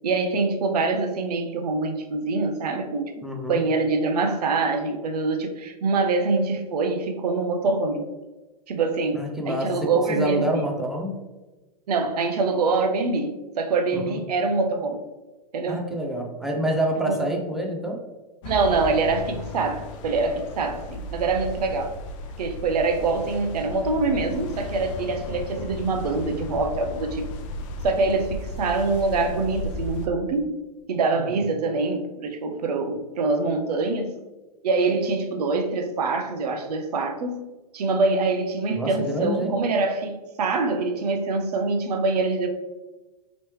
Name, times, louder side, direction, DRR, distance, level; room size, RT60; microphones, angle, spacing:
voice 1, 0.0-8.0 8.7-10.6 11.9-15.0 15.5-15.8 17.1-17.3 18.4-21.9 22.4-27.3 27.8-30.6 30.9-34.2 34.6-37.5 37.7-42.5, right 3 dB, 75° right, 5 dB, 0.6 m, -25 dB
voice 2, 3.2-3.6 9.1-11.2 13.9-14.2 15.7-18.0 31.2-31.3 38.7-39.5, right 1 dB, ahead, 0 dB, 0.5 m, -27 dB
sound 1, 18.4-30.1, left 2 dB, 50° left, 0.5 m, -35 dB
3.0 x 2.9 x 3.1 m, 1.1 s
hypercardioid pair, 110°, 20 cm